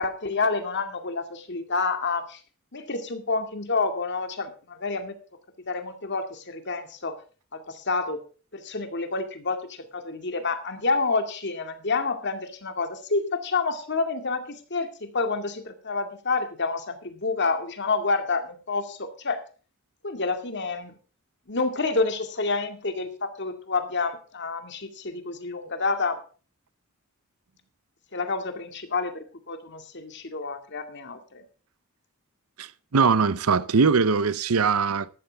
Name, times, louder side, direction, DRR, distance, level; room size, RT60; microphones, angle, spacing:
voice 1, 0.0-2.4 2.7-5.2 5.7-7.2 7.5-8.2 8.5-19.4 20.0-20.9 21.5-26.2 28.1-31.4, left 3 dB, 55° left, 2.2 m, -28 dB
voice 2, 32.6-35.1, right 5 dB, 85° right, 0.7 m, -21 dB
13.5 x 13.0 x 3.5 m
head